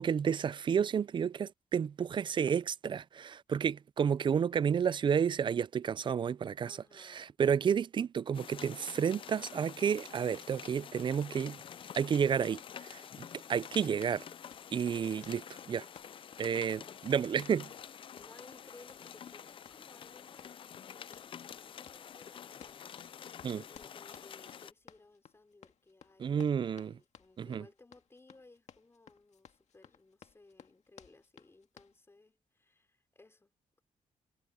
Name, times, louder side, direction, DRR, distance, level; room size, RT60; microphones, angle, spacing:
voice 1, 0.0-6.8 7.1-11.6 12.0-14.2 14.7-15.8 16.4-17.7 23.4-23.6 26.2-27.0 27.4-27.6, right 7 dB, 35° right, 0.4 m, -31 dB
voice 2, 6.7-7.4 18.2-22.9 23.2-33.5, left 2 dB, 20° left, 4.8 m, -60 dB
sound 1, 8.3-24.7, left 8 dB, 40° left, 0.3 m, -49 dB
Run, 14.4-32.0, left 8 dB, 60° left, 1.8 m, -58 dB
cardioid pair, 135°, 13 cm